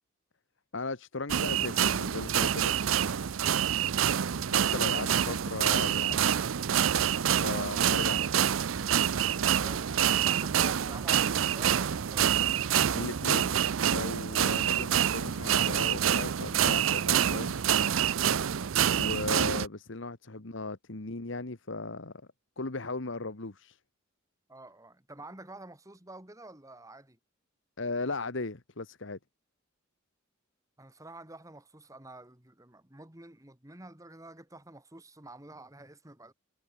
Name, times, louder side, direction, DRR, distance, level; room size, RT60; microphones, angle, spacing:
voice 1, 0.7-2.7 4.5-6.4 7.4-8.3 12.9-13.5 13.8-17.6 18.8-22.1 22.6-23.8 27.8-29.2, left 3 dB, 65° left, 1.4 m, -37 dB
sound 1, 1.3-19.7, right 9 dB, 75° right, 0.6 m, -27 dB
voice 2, 7.5-7.9 9.6-12.3 24.5-27.2 30.8-36.3, right 2 dB, 15° right, 2.3 m, -49 dB
head